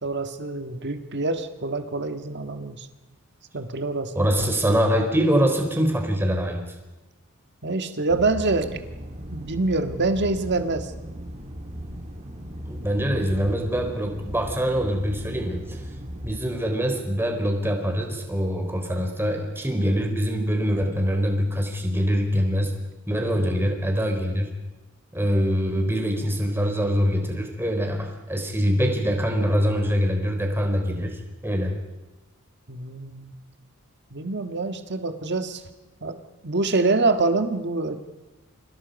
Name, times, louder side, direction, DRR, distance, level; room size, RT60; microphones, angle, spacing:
voice 1, 0.0-2.9 3.5-4.1 7.6-8.8 9.3-10.9 23.3-23.7 32.7-33.3 34.1-35.6 36.0-36.2 36.4-38.0, right 3 dB, 55° right, 8 dB, 1.7 m, -25 dB
voice 2, 4.1-6.7 12.6-15.8 16.2-22.7 23.1-24.5 25.1-31.8, equal, 10° right, 3 dB, 4.0 m, -24 dB
sound 1, 8.1-16.4, equal, 35° right, 3.3 m, -37 dB
29.5 x 25.0 x 5.3 m, 1.1 s
head